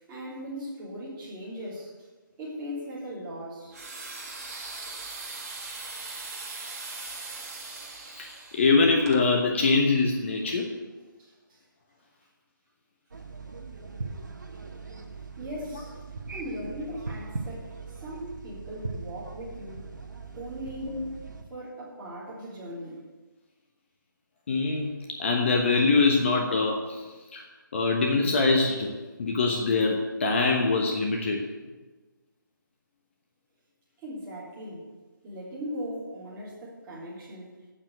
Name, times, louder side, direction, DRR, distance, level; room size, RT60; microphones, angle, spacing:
voice 1, 0.1-2.1 2.4-3.8 7.2-7.5 11.2-11.6 15.4-16.0 16.3-19.8 20.3-21.0 21.5-23.1 34.0-34.8 35.2-37.6, equal, 15° right, -8 dB, 3.1 m, -39 dB
sound 1, 3.7-9.2, right 3 dB, 45° right, 1.6 m, -40 dB
voice 2, 8.2-10.7 20.8-21.1 24.5-24.9 25.2-27.0 27.3-27.4 27.7-28.9 29.2-31.4, left 3 dB, 35° left, 1 dB, 1.1 m, -23 dB
sound 2, 13.1-21.4, right 4 dB, 60° right, 1.4 m, -40 dB
8.8 x 7.4 x 8.0 m, 1.3 s
figure-of-eight pair, 150°, 11 cm